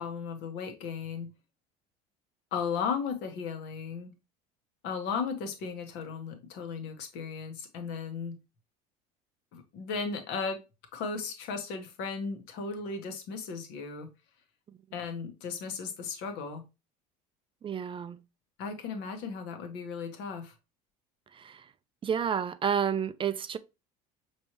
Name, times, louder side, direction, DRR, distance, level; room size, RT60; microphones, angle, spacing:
voice 1, 0.0-1.3 2.5-4.1 4.8-8.4 9.5-10.6 10.9-14.1 14.9-16.6 18.6-20.5, left 5 dB, 65° left, 1.2 m, -36 dB
voice 2, 17.6-18.2 21.4-21.6 22.0-23.6, right 8 dB, 25° right, 0.4 m, -30 dB
5.3 x 3.2 x 2.9 m
supercardioid pair, 90°, 19 cm